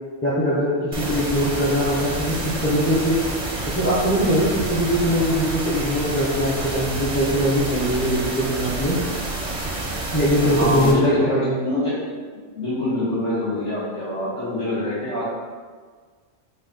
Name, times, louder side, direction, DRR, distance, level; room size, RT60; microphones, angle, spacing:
voice 1, 0.2-3.2 3.7-9.0 10.1-11.6, equal, 15° left, -8 dB, 0.5 m, -21 dB
sound 1, 0.9-10.9, right 2 dB, 35° right, 0.6 m, -28 dB
voice 2, 10.6-12.1 12.6-15.3, left 1 dB, 80° left, -9 dB, 2.0 m, -25 dB
5.4 x 2.5 x 3.9 m, 1.5 s
omnidirectional pair, 1.3 m